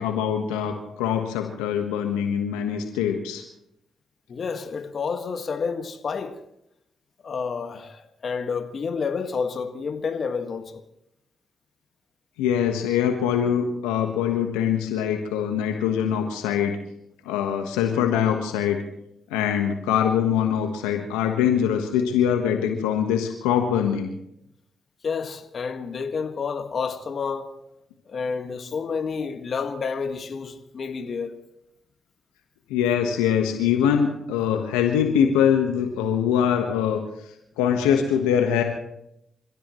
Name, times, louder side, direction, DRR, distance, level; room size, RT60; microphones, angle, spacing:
voice 1, 0.0-3.4 12.4-16.8 17.2-18.8 19.3-24.1 32.7-37.0 37.6-38.6, left 8 dB, 90° left, 1.4 m, -23 dB
voice 2, 4.3-6.4 7.2-10.8 25.0-27.5 28.1-31.4, left 5 dB, 55° left, 1.8 m, -29 dB
29.5 x 15.5 x 3.2 m
hypercardioid pair, 45°, 0 cm